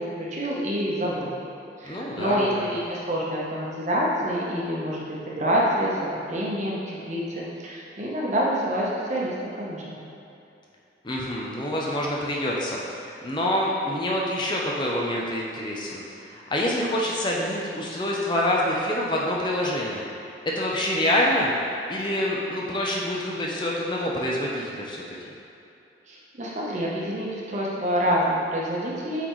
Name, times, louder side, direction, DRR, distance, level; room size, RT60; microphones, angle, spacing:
voice 1, 0.0-1.3 1.8-10.0 26.1-29.3, equal, 40° right, -5 dB, 0.9 m, -27 dB
voice 2, 1.8-2.6 11.0-20.0 20.4-21.5 21.9-25.2, left 1 dB, 25° left, -3 dB, 0.5 m, -26 dB
8.1 x 3.9 x 3.1 m, 2.7 s
head